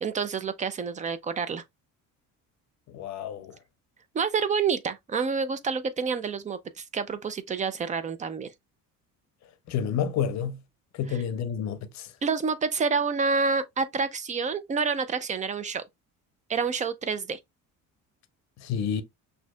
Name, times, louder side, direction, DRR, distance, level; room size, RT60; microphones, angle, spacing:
voice 1, 0.0-1.6 4.1-8.5 12.2-15.8 16.5-17.4, right 5 dB, 25° right, 0.4 m, -28 dB
voice 2, 2.9-3.6 9.7-10.6 10.9-12.1 18.6-19.0, left 8 dB, 55° left, 0.7 m, -30 dB
6.1 x 2.7 x 2.2 m
cardioid pair, 140°, 33 cm